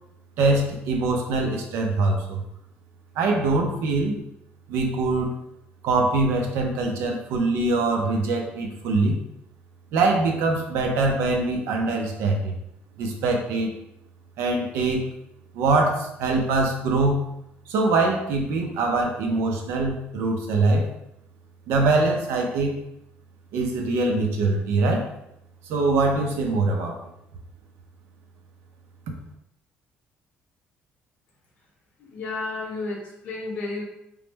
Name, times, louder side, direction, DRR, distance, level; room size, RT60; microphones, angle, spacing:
voice 1, 0.4-2.4 3.2-4.2 4.7-5.3 5.8-9.2 9.9-12.5 13.0-13.7 14.4-15.0 15.5-17.2 17.7-20.9 21.7-22.8 23.5-25.1 25.7-27.0, right 3 dB, 85° right, 2 dB, 0.6 m, -23 dB
voice 2, 32.0-33.8, left 3 dB, 45° left, -2 dB, 0.8 m, -32 dB
3.2 x 2.0 x 3.3 m, 0.81 s
cardioid pair, 180°, 4 cm